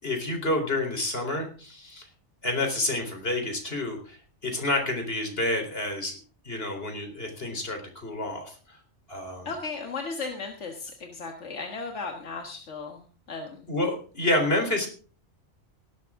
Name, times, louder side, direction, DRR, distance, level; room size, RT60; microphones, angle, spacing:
voice 1, 0.0-2.0 2.4-6.2 6.4-8.8 9.1-9.5 13.7-14.9, left 1 dB, 55° left, 4 dB, 4.2 m, -29 dB
voice 2, 9.5-13.7, left 4 dB, 85° left, 4 dB, 1.8 m, -36 dB
17.5 x 12.5 x 3.7 m, 0.39 s
omnidirectional pair, 1.2 m